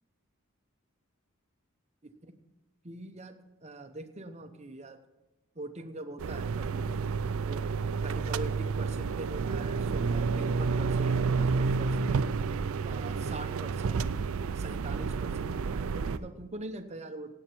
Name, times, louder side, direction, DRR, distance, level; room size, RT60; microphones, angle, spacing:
voice 1, 2.8-5.0 5.5-7.0 7.4-12.2 12.8-14.2 14.5-17.3, right 2 dB, 30° right, 7 dB, 0.8 m, -43 dB
sound 1, 6.2-16.2, right 5 dB, 75° right, 0.4 m, -30 dB
15.5 x 8.7 x 4.5 m, 1.0 s
head